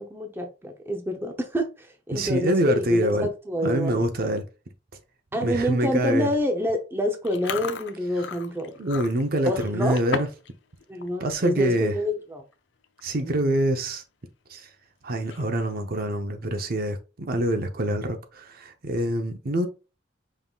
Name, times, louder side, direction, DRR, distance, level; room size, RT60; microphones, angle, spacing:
voice 1, 0.0-4.0 5.3-8.7 9.4-10.0 10.9-12.4 13.2-13.5, equal, 10° right, 0.6 m, -27 dB
voice 2, 2.1-3.3 3.6-4.4 5.4-6.3 8.8-10.3 11.2-12.0 13.0-14.0 14.5-14.7 15.0-19.7, right 1 dB, 55° right, 0.7 m, -25 dB
Chewing mastication, 7.2-10.5 10.8-11.1 11.6-11.8 12.5-12.6 12.8-13.2 13.6-13.7 15.2-15.7, left 5 dB, 70° left, 0.5 m, -35 dB
5.5 x 3.7 x 2.3 m
head